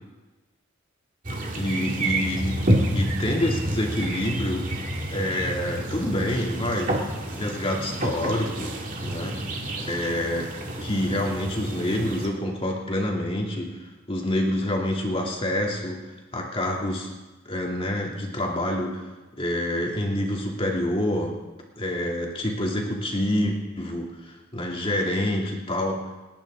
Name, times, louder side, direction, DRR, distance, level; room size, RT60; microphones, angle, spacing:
sound 1, 1.2-12.3, right 1 dB, 40° right, 2.3 m, -29 dB
voice 1, 1.6-2.7 2.9-4.7 5.1-7.0 7.2-8.8 9.0-9.4 9.8-10.5 10.8-13.8 14.1-16.0 16.3-17.1 17.4-19.0 19.4-21.4 21.8-26.2, left 1 dB, 30° left, -1 dB, 2.7 m, -27 dB
29.5 x 10.5 x 3.8 m, 1.2 s
head